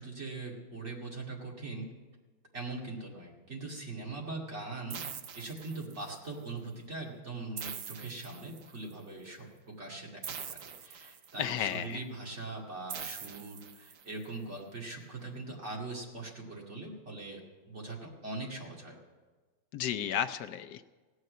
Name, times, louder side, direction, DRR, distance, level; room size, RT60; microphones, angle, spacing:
voice 1, 0.0-1.9 2.5-5.0 5.3-17.4 17.7-19.0, right 3 dB, 35° right, -2 dB, 2.5 m, -41 dB
sound 1, 4.9-6.2 7.6-8.9 10.2-11.6 12.9-14.2, right 7 dB, 60° right, 0.9 m, -43 dB
voice 2, 11.4-12.0 19.7-20.9, left 9 dB, 70° left, 8 dB, 1.0 m, -33 dB
17.0 x 6.5 x 9.2 m, 1.3 s
omnidirectional pair, 2.1 m